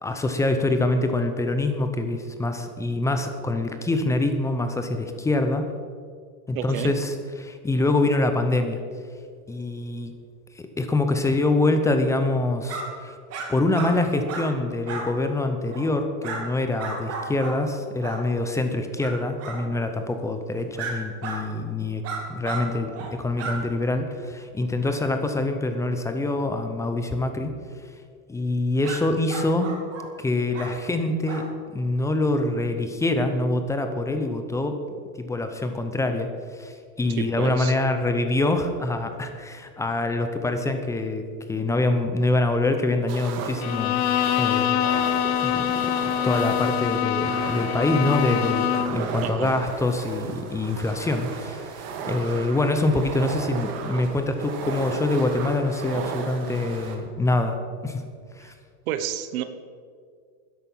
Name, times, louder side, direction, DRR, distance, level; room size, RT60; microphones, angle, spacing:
voice 1, 0.0-5.7 6.5-8.8 9.5-10.1 10.5-13.2 13.5-22.0 22.3-27.5 28.3-29.7 30.2-34.8 35.2-44.0 44.4-57.6 57.8-58.0 58.3-58.5, left 2 dB, 5° left, 7 dB, 0.6 m, -25 dB
voice 2, 6.5-6.9 37.2-37.7 49.2-49.6 58.9-59.4, right 10 dB, 70° right, 10 dB, 1.1 m, -30 dB
sound 1, 12.7-12.8 13.3-13.5 13.7-13.9 14.3-14.5 14.8-15.1 15.7-15.9 16.2-16.4 16.8-17.6 18.0-18.2 19.0-19.1 19.4-19.6 20.8-20.9 21.2-21.4 22.0-22.6 22.9-23.1 23.4-23.6 28.8-29.0 29.3-30.1 30.5-30.7 31.3-31.4, right 4 dB, 35° right, 2.7 m, -33 dB
sound 2, 43.1-57.0, right 5 dB, 50° right, 2.1 m, -35 dB
Bowed string instrument, 43.6-49.1, left 11 dB, 50° left, 0.9 m, -24 dB
13.0 x 10.5 x 5.6 m, 2.1 s
supercardioid pair, 145°, 44 cm